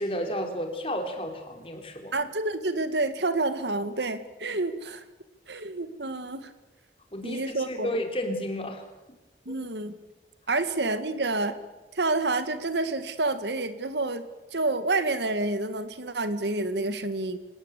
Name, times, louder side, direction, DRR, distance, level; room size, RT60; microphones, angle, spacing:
voice 1, 0.0-2.1 7.1-8.8 9.5-9.6, equal, 30° left, 4 dB, 3.5 m, -32 dB
voice 2, 2.1-5.0 5.5-6.5 7.2-7.9 9.5-9.9 10.5-11.6 11.9-17.4, right 2 dB, 85° right, 11 dB, 1.8 m, -28 dB
27.0 x 18.0 x 8.2 m, 1.1 s
head